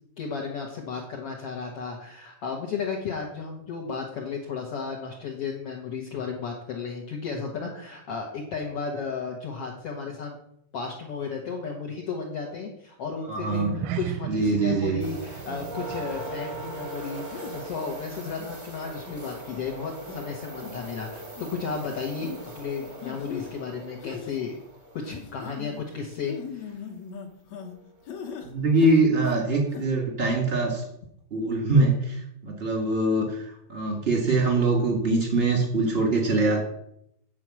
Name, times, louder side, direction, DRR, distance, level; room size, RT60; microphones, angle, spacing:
voice 1, 0.2-10.4 10.7-24.6 24.9-26.8, left 5 dB, 85° left, -1 dB, 1.3 m, -34 dB
voice 2, 13.3-13.7 14.3-15.0 28.4-30.8 31.3-36.6, right 2 dB, 40° right, 0 dB, 0.8 m, -23 dB
sound 1, 13.5-18.1 18.4-18.7 19.2-19.3, right 11 dB, 85° right, 2.4 m, -38 dB
sound 2, 13.6-13.7 14.4-15.0 15.5-15.9 16.5-16.7 17.3-17.6 18.1-18.5 19.1-19.2 19.5-19.7 20.1-20.2 20.6-20.9 21.3-21.5 22.2-22.4 23.0-23.5 24.0-24.4 25.0-25.8 26.2-27.8 28.1-28.5 28.8-29.4 29.7-29.9, left 6 dB, 65° left, 1.9 m, -39 dB
sound 3, 15.0-25.6 27.6-27.7 28.3-28.4, right 1 dB, 65° right, 0.4 m, -40 dB
9.2 x 4.7 x 7.5 m, 0.74 s
omnidirectional pair, 4.4 m